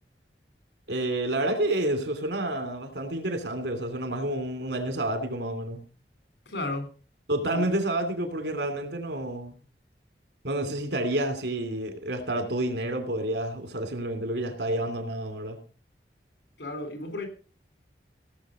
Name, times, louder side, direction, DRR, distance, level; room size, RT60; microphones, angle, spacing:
voice 1, 0.9-5.8 7.3-9.5 10.4-15.6, right 1 dB, 80° right, 2.8 m, -29 dB
voice 2, 6.5-6.9 7.5-7.6 16.6-17.3, left 2 dB, 80° left, 3.8 m, -33 dB
17.0 x 7.3 x 5.0 m
head